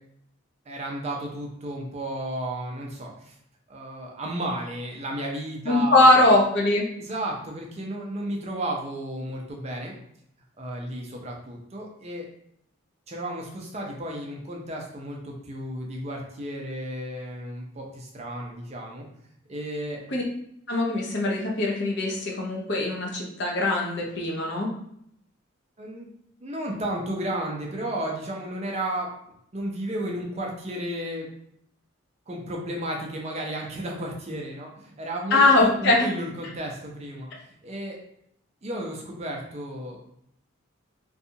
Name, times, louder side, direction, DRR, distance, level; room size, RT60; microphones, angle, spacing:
voice 1, 0.7-3.4 3.7-6.3 7.0-9.9 10.6-12.3 13.1-19.1 19.5-20.0 25.8-26.1 26.4-29.1 29.5-31.3 32.3-38.0 38.6-40.0, right 1 dB, 30° right, 0 dB, 0.4 m, -33 dB
voice 2, 5.6-6.8 20.1-20.2 20.7-24.7 35.3-36.1, left 2 dB, 55° left, -1 dB, 0.6 m, -21 dB
2.6 x 2.3 x 2.7 m, 0.72 s
head